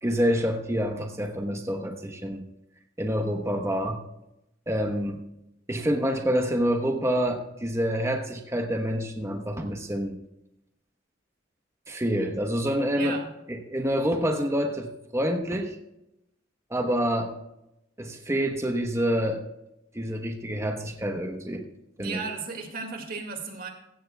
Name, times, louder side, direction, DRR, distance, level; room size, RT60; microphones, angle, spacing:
voice 1, 0.0-2.4 3.0-4.0 4.7-5.2 5.7-10.2 11.9-13.2 13.5-15.8 16.7-17.3 18.0-19.4 19.9-21.7 22.0-22.2, equal, 15° right, 3 dB, 1.1 m, -27 dB
voice 2, 13.0-13.3 22.0-23.7, right 4 dB, 50° right, 3 dB, 2.1 m, -35 dB
15.5 x 15.0 x 2.3 m, 0.86 s
head